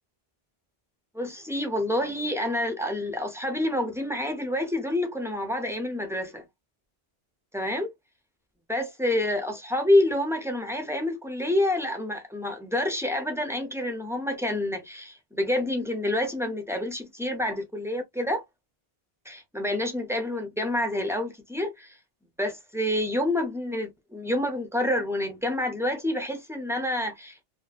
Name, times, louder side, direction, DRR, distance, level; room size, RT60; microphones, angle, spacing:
voice 1, 1.1-6.4 7.5-7.9 8.7-18.4 19.3-22.0 22.4-27.4, left 1 dB, 5° right, 0.4 m, -28 dB
2.6 x 2.6 x 2.3 m
omnidirectional pair, 1.1 m